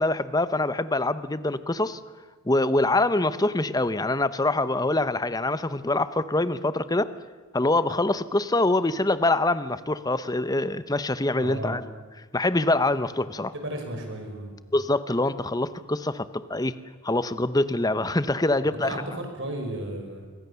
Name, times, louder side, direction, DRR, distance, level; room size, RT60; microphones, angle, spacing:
voice 1, 0.0-2.0 2.5-7.1 7.5-11.8 12.3-13.5 14.7-16.7 17.0-19.0, left 2 dB, 15° left, 13 dB, 0.8 m, -24 dB
voice 2, 11.4-11.8 13.5-14.5 18.8-20.3, right 1 dB, 55° right, 4 dB, 5.6 m, -34 dB
27.5 x 23.5 x 7.0 m, 1.4 s
head